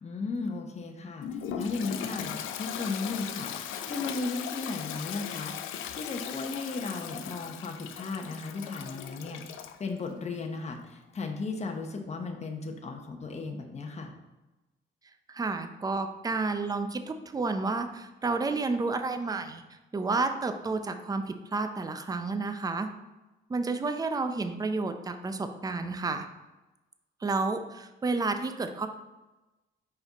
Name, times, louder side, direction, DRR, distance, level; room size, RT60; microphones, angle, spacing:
voice 1, 0.0-5.6 5.9-14.1, left 3 dB, 35° left, 4 dB, 0.9 m, -35 dB
Toilet flush, 1.2-9.8, left 9 dB, 85° left, 0.5 m, -38 dB
voice 2, 15.3-19.6 19.9-22.9 23.5-26.3 27.2-28.9, right 3 dB, 20° right, 8 dB, 0.5 m, -30 dB
5.3 x 4.8 x 4.0 m, 1.1 s
cardioid pair, 90°, 20 cm